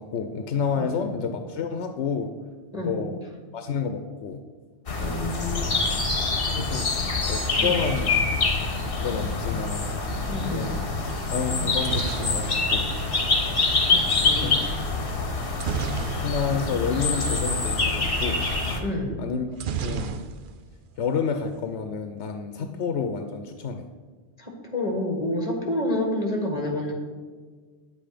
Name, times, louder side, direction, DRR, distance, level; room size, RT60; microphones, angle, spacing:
voice 1, 0.0-2.3 2.8-3.2 3.5-4.4 5.5-6.0 6.6-6.9 7.3-8.2 9.0-9.9 10.5-10.9 11.3-12.9 14.4-14.6 16.0-18.4 19.2-19.5 19.8-20.3 21.0-23.8, left 6 dB, 90° left, 7 dB, 1.0 m, -29 dB
voice 2, 0.7-1.1 2.7-3.0 5.0-6.0 7.6-7.8 10.3-10.8 13.9-14.8 16.5-16.6 18.8-19.2 22.6-22.7 24.4-26.9, left 1 dB, 35° left, 2 dB, 1.8 m, -29 dB
sound 1, 4.9-18.8, left 3 dB, 55° left, 1.5 m, -25 dB
sound 2, 11.5-13.6 15.6-16.7 17.0-17.2 17.4-17.6 19.6-20.7 21.0-21.6, right 7 dB, 60° right, 0.6 m, -33 dB
9.7 x 7.8 x 5.1 m, 1.5 s
omnidirectional pair, 1.1 m